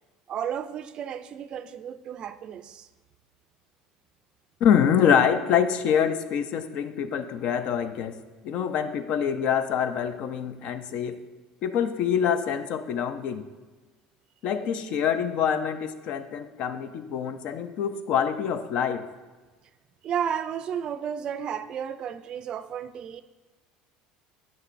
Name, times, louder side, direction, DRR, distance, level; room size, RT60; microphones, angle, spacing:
voice 1, 0.3-2.9 14.6-15.0 20.0-23.2, right 8 dB, 45° right, 13 dB, 0.3 m, -33 dB
voice 2, 4.6-11.2 11.6-13.4 14.4-19.0, left 8 dB, 60° left, 11 dB, 0.5 m, -25 dB
8.3 x 6.6 x 2.5 m, 1.3 s
supercardioid pair, 95°, 2 cm